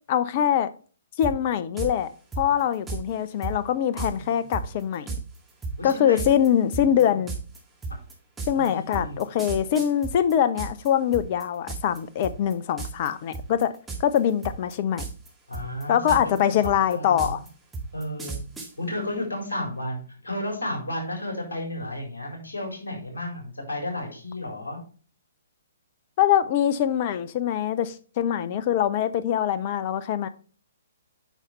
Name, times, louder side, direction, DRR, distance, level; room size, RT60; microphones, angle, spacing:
voice 1, 0.1-0.7 1.2-2.1 2.4-5.1 5.8-7.3 8.5-13.7 14.0-15.0 15.9-17.4 26.2-30.3, left 9 dB, 35° left, 0.6 m, -23 dB
sound 1, 1.2-1.3 1.8-1.9 2.3-3.0 3.4-3.5 4.0-4.1 4.5-10.9 11.1-12.0 12.2-12.5 12.8-13.1 13.3-14.2 14.4-15.3 15.5-18.7, right 4 dB, 10° right, 2.0 m, -33 dB
voice 2, 4.1-4.5 5.8-6.2 6.7-7.1 7.9-8.0 8.5-9.1 15.5-17.4 17.9-18.4 18.8-24.8, left 1 dB, 65° left, 4.2 m, -33 dB
9.2 x 5.7 x 3.2 m
figure-of-eight pair, 125°, 0 cm